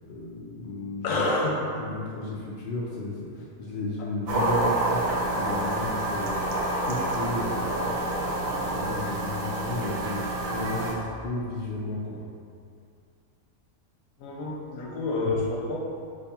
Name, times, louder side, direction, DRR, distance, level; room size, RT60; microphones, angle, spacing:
voice 1, 0.1-12.2, left 2 dB, 65° left, -5 dB, 0.5 m, -34 dB
voice 2, 1.0-1.6 14.2-15.8, left 2 dB, 80° left, -2 dB, 1.0 m, -27 dB
sound 1, 4.3-10.9, right 1 dB, 65° right, 0.6 m, -28 dB
3.0 x 2.3 x 4.2 m, 2.3 s
omnidirectional pair, 1.4 m